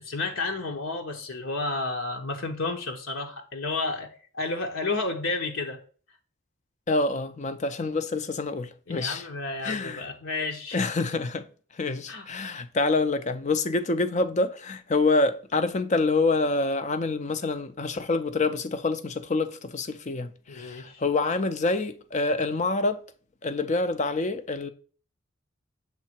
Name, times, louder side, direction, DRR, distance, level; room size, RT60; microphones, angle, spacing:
voice 1, 0.0-5.8 8.9-10.8 12.1-12.3 20.5-21.0, left 3 dB, 70° left, 0.9 m, -31 dB
voice 2, 6.9-9.3 9.6-10.1 10.7-11.5 11.8-23.0 23.4-24.7, left 3 dB, 35° left, 0.5 m, -26 dB
7.4 x 3.3 x 4.4 m
head